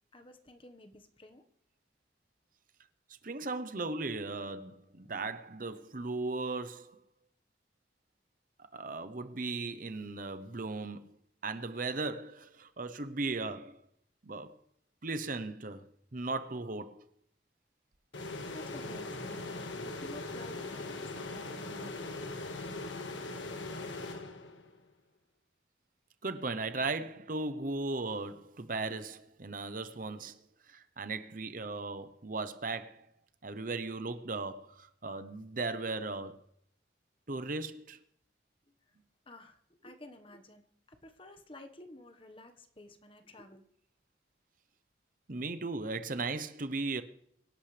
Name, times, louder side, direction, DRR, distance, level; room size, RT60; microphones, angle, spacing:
voice 1, 0.1-1.5 18.5-22.0 38.6-38.7 39.3-43.6, left 1 dB, 30° left, 1.4 m, -52 dB
voice 2, 3.2-7.0 8.7-11.2 11.4-13.8 14.2-14.6 15.0-15.8 16.1-17.0 26.2-30.4 30.7-33.1 33.4-36.4 37.3-38.0 45.3-47.0, right 3 dB, 45° right, 0.9 m, -37 dB
sound 1, 18.1-24.8, left 2 dB, 90° left, 1.7 m, -40 dB
24.0 x 11.5 x 3.4 m
head